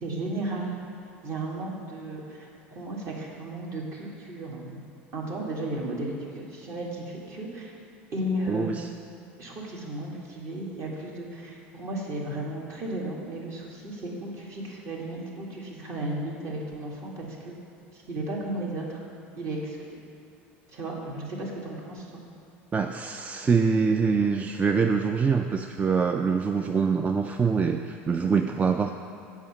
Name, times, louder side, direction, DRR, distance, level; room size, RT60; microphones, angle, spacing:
voice 1, 0.0-0.8 1.2-4.8 5.1-7.7 8.1-8.7 9.4-17.5 17.9-19.0 19.4-19.8 20.7-22.2, right 1 dB, 50° right, -2 dB, 1.9 m, -34 dB
voice 2, 8.5-8.9 22.7-28.9, right 5 dB, 20° right, 5 dB, 0.3 m, -24 dB
6.9 x 5.0 x 7.0 m, 2.6 s
hypercardioid pair, 90°, 7 cm